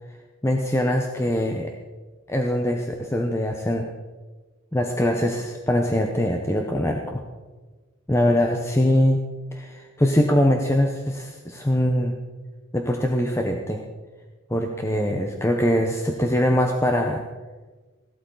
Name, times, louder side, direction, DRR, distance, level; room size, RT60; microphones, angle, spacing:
voice 1, 0.4-1.7 2.3-3.9 4.7-7.2 8.1-9.2 9.5-12.1 12.7-13.8 14.5-17.2, left 1 dB, 10° left, 2 dB, 0.8 m, -22 dB
17.0 x 12.5 x 3.9 m, 1.3 s
head